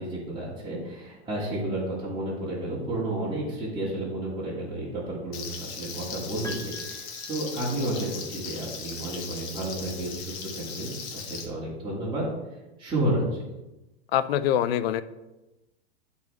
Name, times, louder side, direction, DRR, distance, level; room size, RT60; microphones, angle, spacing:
voice 1, 0.0-12.3 12.8-13.4, right 1 dB, 15° right, -8 dB, 2.6 m, -31 dB
Frying (food), 5.3-11.4, left 6 dB, 50° left, 1.4 m, -38 dB
Piano, 6.4-8.1, equal, 10° left, 0.7 m, -45 dB
voice 2, 14.1-15.0, left 10 dB, 65° left, 14 dB, 0.6 m, -24 dB
12.0 x 4.2 x 3.5 m, 1.0 s
hypercardioid pair, 115°, 32 cm